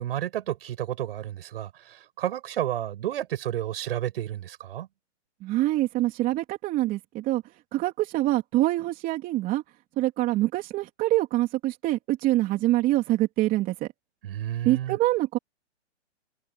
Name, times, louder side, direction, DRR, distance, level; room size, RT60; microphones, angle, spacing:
voice 1, 0.0-4.9 14.2-15.0, right 12 dB, 55° right, 6.1 m, -31 dB
voice 2, 5.4-7.4 7.7-9.6 10.0-13.9 14.6-15.4, right 16 dB, 25° right, 3.4 m, -25 dB
hypercardioid pair, 150°, 35 cm